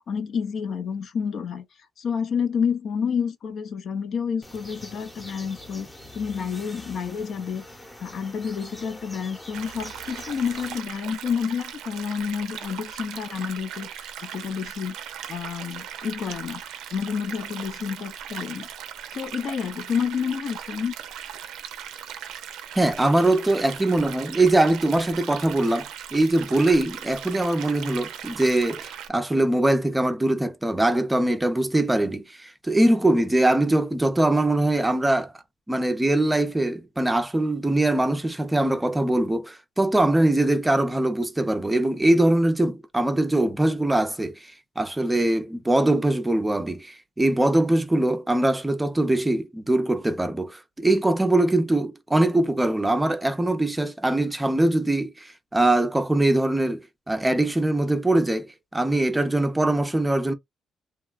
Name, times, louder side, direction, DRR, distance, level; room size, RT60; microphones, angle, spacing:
voice 1, 0.0-1.6 2.0-5.9 6.1-7.6 8.0-13.9 14.2-15.0 15.3-16.6 16.9-18.7 19.1-20.9, left 6 dB, 60° left, 0.6 m, -29 dB
sound 1, 4.4-10.8, left 1 dB, 15° left, 0.8 m, -44 dB
sound 2, 9.5-29.1, right 9 dB, 90° right, 0.5 m, -38 dB
voice 2, 22.7-35.3 35.7-44.3 44.8-60.3, right 1 dB, 10° right, 0.5 m, -22 dB
2.9 x 2.2 x 2.3 m
cardioid pair, 90°, 0 cm